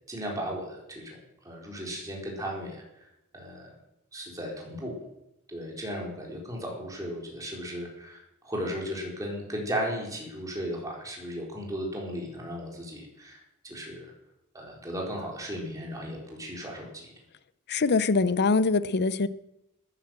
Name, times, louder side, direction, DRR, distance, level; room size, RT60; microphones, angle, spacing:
voice 1, 0.1-3.1 3.3-3.7 4.1-5.0 5.5-14.1 14.5-17.1, equal, 15° right, -2 dB, 4.2 m, -36 dB
voice 2, 17.7-19.3, left 4 dB, 50° left, 15 dB, 0.6 m, -23 dB
13.5 x 10.0 x 7.7 m, 0.85 s
head